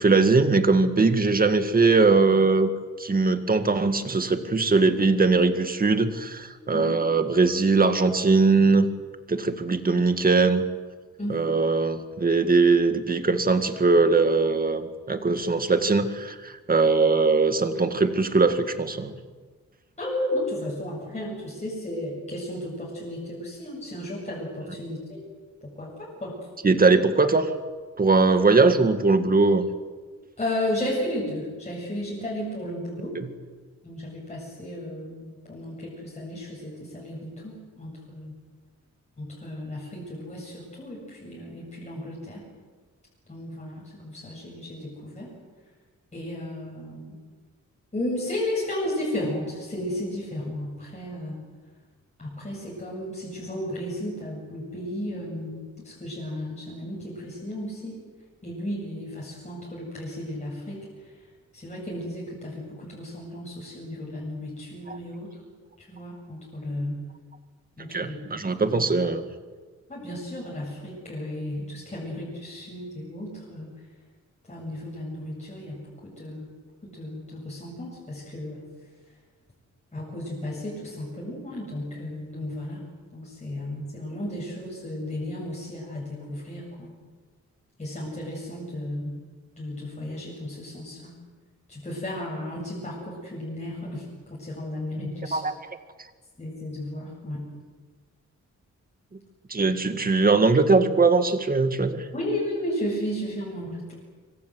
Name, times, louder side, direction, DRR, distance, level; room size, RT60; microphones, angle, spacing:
voice 1, 0.0-2.7 3.0-8.9 9.3-10.6 11.3-19.2 26.6-27.5 28.0-29.7 33.2-33.3 64.9-65.0 67.9-69.3 95.0-95.6 99.5-102.0, right 3 dB, 30° right, 8 dB, 2.0 m, -21 dB
voice 2, 6.7-7.0 11.2-11.5 20.0-25.0 25.6-26.4 30.4-33.2 33.8-38.3 39.2-42.4 43.3-45.3 46.1-47.2 47.9-51.4 52.2-58.0 58.4-60.8 61.5-65.3 65.8-67.0 67.8-68.2 68.6-68.7 69.9-73.7 74.5-76.5 76.8-78.6 79.9-82.9 83.1-86.9 87.8-89.2 89.6-91.2 91.7-95.4 96.4-97.5 102.1-103.9, left 1 dB, 25° left, -4 dB, 7.9 m, -34 dB
25.5 x 25.0 x 7.8 m, 1.4 s
wide cardioid pair, 135°, 29 cm